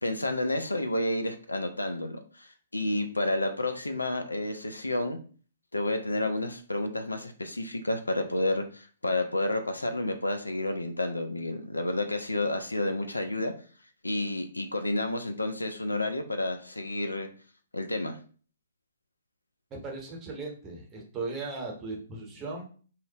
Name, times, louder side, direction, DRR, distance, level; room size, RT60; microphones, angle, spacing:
voice 1, 0.0-5.2 5.7-13.5 14.0-17.3 17.7-18.2, left 1 dB, 90° left, 7 dB, 0.3 m, -30 dB
voice 2, 19.8-22.7, right 3 dB, 20° right, 0 dB, 0.8 m, -37 dB
2.7 x 2.0 x 2.7 m, 0.40 s
figure-of-eight pair, 125°, 0 cm